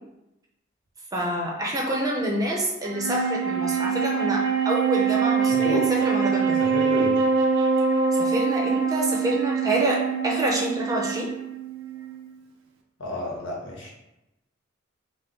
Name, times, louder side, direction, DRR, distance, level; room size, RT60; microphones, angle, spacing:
voice 1, 1.1-6.6 8.2-11.3, right 1 dB, 20° right, -2 dB, 0.7 m, -27 dB
Wind instrument woodwind instrument, 2.8-12.3, right 5 dB, 85° right, 0.7 m, -24 dB
voice 2, 5.5-5.9 6.6-7.2 13.0-13.9, left 1 dB, 70° left, -2 dB, 1.3 m, -31 dB
5.3 x 2.1 x 4.3 m, 0.91 s
head